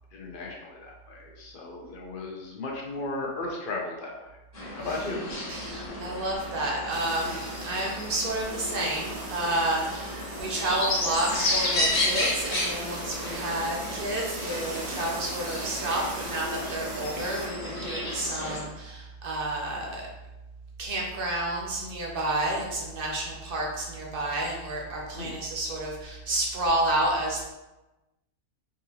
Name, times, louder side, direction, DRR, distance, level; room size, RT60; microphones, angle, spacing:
voice 1, 0.1-4.3 4.7-5.2 25.1-25.4, left 2 dB, 55° left, -1 dB, 0.6 m, -35 dB
sound 1, 4.5-18.6, left 1 dB, 75° left, 1.3 m, -32 dB
voice 2, 5.5-20.1 20.8-27.4, right 1 dB, 55° right, -1 dB, 0.8 m, -30 dB
sound 2, 6.9-17.5, right 3 dB, 85° right, 1.1 m, -40 dB
3.7 x 2.5 x 2.8 m, 1.0 s
omnidirectional pair, 1.3 m